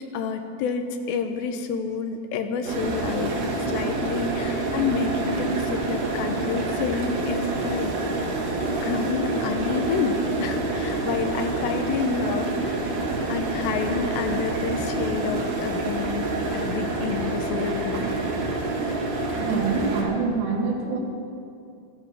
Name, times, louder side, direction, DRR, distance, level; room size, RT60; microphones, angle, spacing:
voice 1, 0.1-7.9 8.3-8.4 8.8-12.8 13.3-18.1, left 5 dB, 80° left, 6 dB, 3.1 m, -29 dB
sound 1, 2.6-20.0, right 2 dB, 55° right, 3.2 m, -27 dB
voice 2, 19.4-21.0, right 4 dB, 90° right, 0 dB, 4.5 m, -26 dB
14.5 x 13.5 x 5.9 m, 2.5 s
omnidirectional pair, 5.0 m